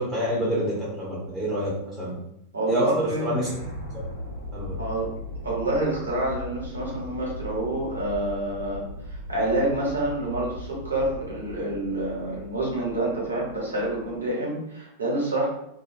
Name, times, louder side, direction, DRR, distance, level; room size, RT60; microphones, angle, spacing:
voice 1, 0.0-2.1 2.7-3.5 4.5-4.8, equal, 5° right, -7 dB, 0.8 m, -27 dB
voice 2, 2.5-3.3 4.8-5.1 5.4-15.5, right 2 dB, 75° right, -3 dB, 0.9 m, -27 dB
sound 1, 3.2-14.3, left 1 dB, 75° left, 1.2 m, -38 dB
2.4 x 2.2 x 2.5 m, 0.78 s
figure-of-eight pair, 90°, 0 cm